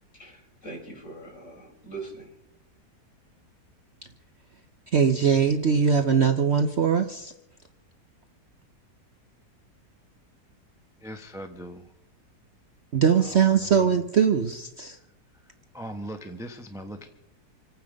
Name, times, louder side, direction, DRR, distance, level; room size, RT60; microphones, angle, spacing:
voice 1, 0.1-2.4, right 3 dB, 45° left, -2 dB, 5.3 m, -42 dB
voice 2, 4.9-7.3 12.9-15.0, right 7 dB, 50° right, 7 dB, 0.9 m, -21 dB
voice 3, 11.0-11.9 13.2-14.0 15.7-17.1, right 1 dB, ahead, 5 dB, 0.9 m, -40 dB
27.0 x 9.3 x 5.2 m, 0.83 s
omnidirectional pair, 1.7 m